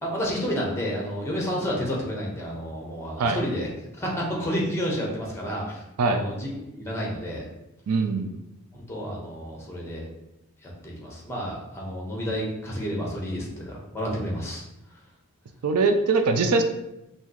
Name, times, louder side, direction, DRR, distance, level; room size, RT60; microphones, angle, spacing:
voice 1, 0.0-3.7 4.0-7.4 8.9-10.0 10.6-14.6, equal, 10° left, -3 dB, 1.1 m, -30 dB
voice 2, 7.9-8.4 15.6-16.6, right 3 dB, 75° right, 6 dB, 0.4 m, -22 dB
5.6 x 2.7 x 3.0 m, 0.92 s
head